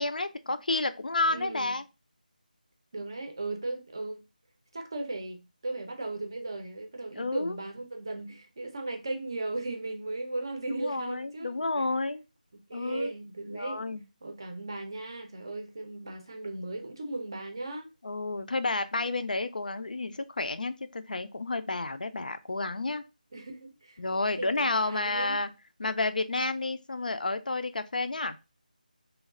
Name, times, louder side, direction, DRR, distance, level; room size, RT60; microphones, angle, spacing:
voice 1, 0.0-1.8 7.1-7.6 10.7-12.2 12.7-13.1 13.5-14.0 18.0-23.0 24.0-25.5 25.8-28.4, left 2 dB, 65° left, 0.4 m, -30 dB
voice 2, 1.3-1.8 2.9-4.2 4.7-11.7 12.7-13.8 14.2-17.9 23.3-24.0 24.4-25.4, right 2 dB, 30° right, 0.5 m, -37 dB
3.1 x 2.3 x 3.5 m
figure-of-eight pair, 175°, 5 cm